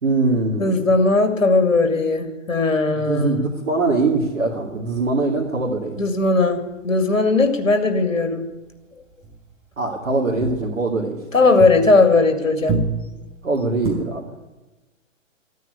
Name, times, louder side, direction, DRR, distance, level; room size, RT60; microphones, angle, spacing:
voice 1, 0.0-0.9 3.0-6.0 9.8-11.2 13.4-14.2, right 3 dB, 70° right, -2 dB, 2.7 m, -22 dB
voice 2, 0.6-3.4 6.0-8.5 11.3-12.8, left 3 dB, 80° left, 5 dB, 2.4 m, -18 dB
sound 1, 3.8-7.5 7.8-8.1 8.4-12.2 12.5-13.9, right 3 dB, 15° right, 5.3 m, -32 dB
14.5 x 9.4 x 8.5 m, 1.1 s
figure-of-eight pair, 120°, 39 cm